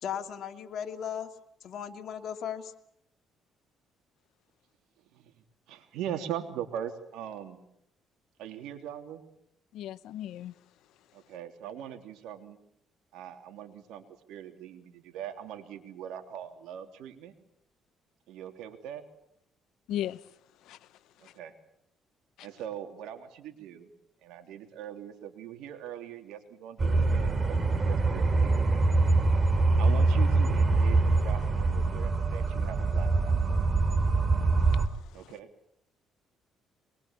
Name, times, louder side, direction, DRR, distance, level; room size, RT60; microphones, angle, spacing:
voice 1, 0.0-1.3 1.6-2.7, left 8 dB, 65° left, 2.7 m, -36 dB
voice 2, 5.7-7.6 8.4-9.2 11.1-12.6 13.1-17.3 18.3-19.0 21.2-21.5 22.4-23.9 24.2-28.8 29.8-33.4 35.1-35.5, right 10 dB, 85° right, 3.2 m, -41 dB
voice 3, 9.7-10.5 19.9-20.2 20.7-20.8, left 12 dB, 80° left, 1.0 m, -35 dB
sound 1, 26.8-34.9, right 3 dB, 30° right, 2.8 m, -24 dB
24.0 x 22.0 x 8.7 m
cardioid pair, 95°, 0 cm